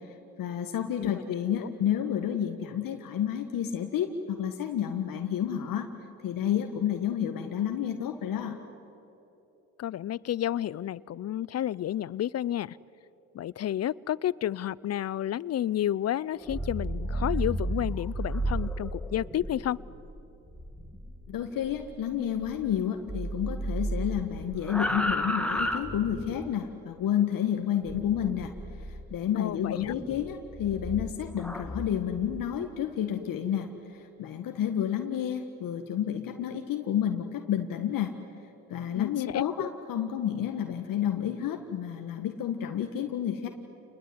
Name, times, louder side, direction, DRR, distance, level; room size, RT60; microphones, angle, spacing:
voice 1, 0.1-5.9 6.2-8.6 21.3-28.5 28.9-38.1 38.7-43.5, left 9 dB, 65° left, 5 dB, 1.7 m, -30 dB
voice 2, 9.8-12.8 13.3-19.8 29.4-30.0 38.9-39.7, left 11 dB, 45° left, 22 dB, 0.6 m, -31 dB
sound 1, 16.3-22.8 23.1-26.5 27.9-29.1 29.8-32.4, right 1 dB, 5° left, 2.3 m, -34 dB
29.0 x 20.5 x 9.6 m, 3.0 s
supercardioid pair, 75°, 36 cm